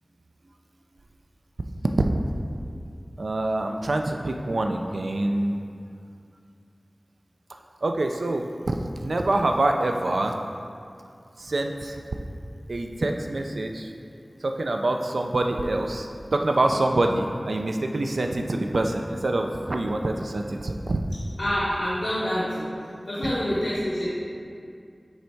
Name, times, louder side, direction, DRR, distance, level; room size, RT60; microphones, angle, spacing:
voice 1, 3.2-5.6 7.8-10.3 11.4-12.0 12.7-13.9 14.4-21.0 23.2-23.3, right 2 dB, 90° right, 3 dB, 0.4 m, -26 dB
voice 2, 21.4-22.7 23.0-24.1, equal, 75° left, -10 dB, 1.2 m, -26 dB
7.8 x 3.4 x 4.5 m, 2.4 s
wide cardioid pair, 50°, 0 cm